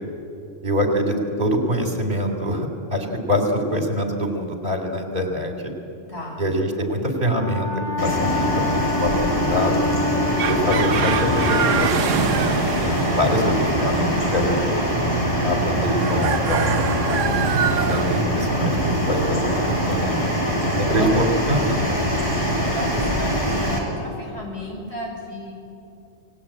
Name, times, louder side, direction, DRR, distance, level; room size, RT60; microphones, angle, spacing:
voice 1, 0.6-5.7 6.4-7.7 8.0-8.6 9.0-9.8 10.4-14.8 15.4-16.8 17.7-20.3 20.7-21.8, equal, 45° right, 4 dB, 3.6 m, -24 dB
voice 2, 6.1-6.4 13.1-13.6 20.9-21.1 22.2-25.5, equal, 60° left, -1 dB, 6.3 m, -35 dB
Wind instrument woodwind instrument, 7.3-11.7, left 5 dB, 85° left, 4.8 m, -28 dB
sound 1, 8.0-23.8, equal, 25° left, 5.0 m, -23 dB
sound 2, 10.3-18.2, right 9 dB, 85° right, 1.1 m, -27 dB
28.5 x 19.5 x 8.8 m, 2.7 s
omnidirectional pair, 1.3 m